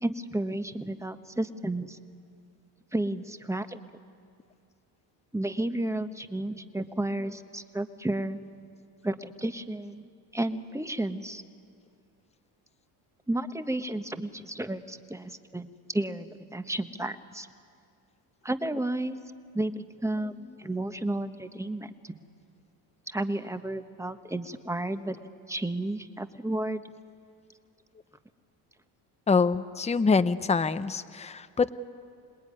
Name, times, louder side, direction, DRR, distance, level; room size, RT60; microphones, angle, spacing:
voice 1, 0.0-2.0 2.9-3.8 5.3-8.4 9.0-11.4 13.3-17.5 18.4-19.2 19.5-22.1 23.1-25.2 25.5-26.8, right 1 dB, 5° right, 9 dB, 1.2 m, -32 dB
voice 2, 29.3-31.7, left 4 dB, 15° left, 11 dB, 0.8 m, -25 dB
27.0 x 19.5 x 9.6 m, 2.3 s
supercardioid pair, 90°, 45 cm